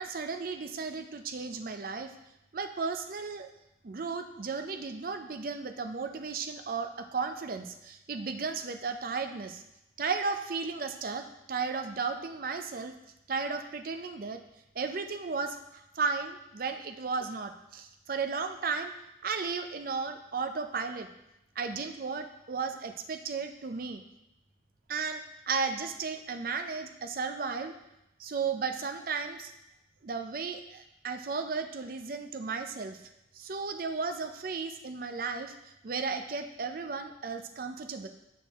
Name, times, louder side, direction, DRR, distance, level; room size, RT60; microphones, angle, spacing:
voice 1, 0.0-2.1 2.5-3.5 3.8-9.6 10.0-12.9 13.3-14.4 14.8-18.9 19.2-21.1 21.6-24.0 24.9-27.7 28.2-29.5 30.0-33.0 33.3-38.1, right 4 dB, 50° right, 7 dB, 0.5 m, -34 dB
6.0 x 6.0 x 3.5 m, 0.87 s
head